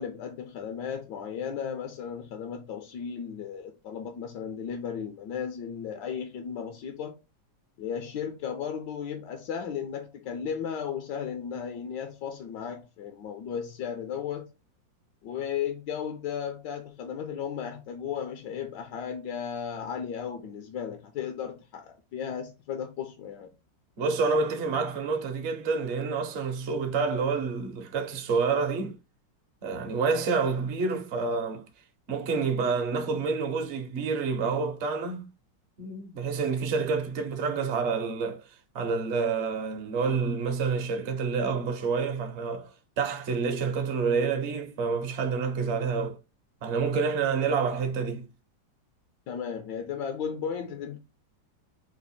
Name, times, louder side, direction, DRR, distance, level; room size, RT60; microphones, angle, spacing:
voice 1, 0.0-7.1 7.8-14.5 15.2-23.5 49.3-51.0, left 7 dB, 80° left, 1.3 m, -35 dB
voice 2, 24.0-29.0 29.6-31.6 32.1-35.2 35.8-38.4 38.7-42.7 43.0-46.2 46.6-48.3, right 5 dB, 50° right, 0.8 m, -28 dB
4.4 x 2.4 x 4.2 m
omnidirectional pair, 2.0 m